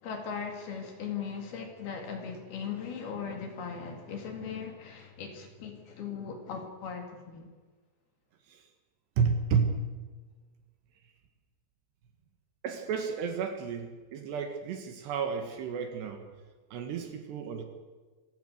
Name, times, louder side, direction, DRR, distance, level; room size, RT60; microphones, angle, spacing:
voice 1, 0.0-7.5, left 6 dB, 55° left, 3 dB, 3.9 m, -38 dB
voice 2, 9.2-9.7 12.6-16.3 16.7-17.6, right 6 dB, 65° right, 6 dB, 3.4 m, -31 dB
26.5 x 16.5 x 6.6 m, 1.4 s
omnidirectional pair, 5.6 m